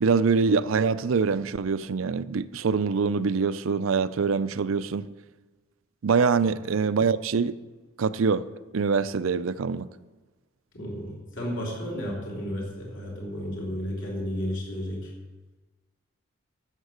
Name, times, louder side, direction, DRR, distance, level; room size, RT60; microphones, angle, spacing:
voice 1, 0.0-5.1 6.0-7.5 8.0-8.4 8.7-9.9, right 5 dB, 80° right, 0.5 m, -24 dB
voice 2, 10.7-15.1, equal, 65° left, 3.5 m, -33 dB
13.5 x 7.3 x 6.6 m
head